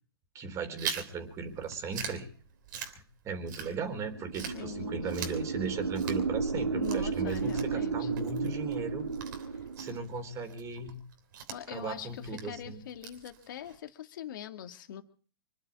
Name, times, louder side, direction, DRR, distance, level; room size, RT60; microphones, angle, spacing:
voice 1, 0.3-2.3 3.2-9.1 9.8-11.0 11.7-12.8, right 4 dB, 25° right, 7 dB, 3.7 m, -37 dB
Chewing mastication, 0.8-4.0 4.3-13.8, right 7 dB, 50° right, 3.2 m, -43 dB
sound 1, 3.9-10.0, right 5 dB, 75° right, 1.2 m, -33 dB
voice 2, 4.5-5.2 6.7-8.1 9.5-9.6 11.5-15.0, left 10 dB, 55° left, 7 dB, 2.2 m, -43 dB
26.0 x 11.5 x 4.9 m, 0.42 s
figure-of-eight pair, 115°, 13 cm